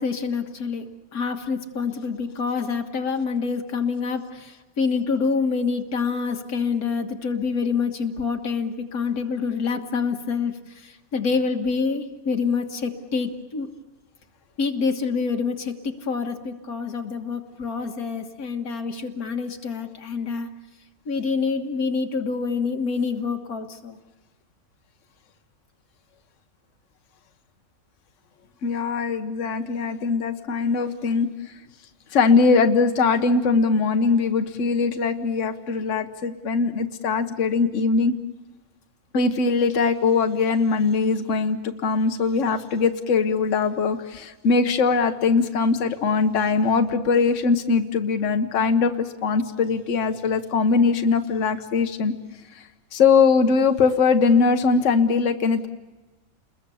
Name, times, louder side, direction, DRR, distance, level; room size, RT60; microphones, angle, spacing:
voice 1, 0.0-13.7 14.6-20.5 21.1-24.0, left 5 dB, 90° left, 5 dB, 2.0 m, -27 dB
voice 2, 28.6-31.3 32.1-38.2 39.1-52.1 52.5-55.7, left 4 dB, 60° left, 7 dB, 1.4 m, -21 dB
30.0 x 21.5 x 7.1 m, 1.2 s
omnidirectional pair, 1.5 m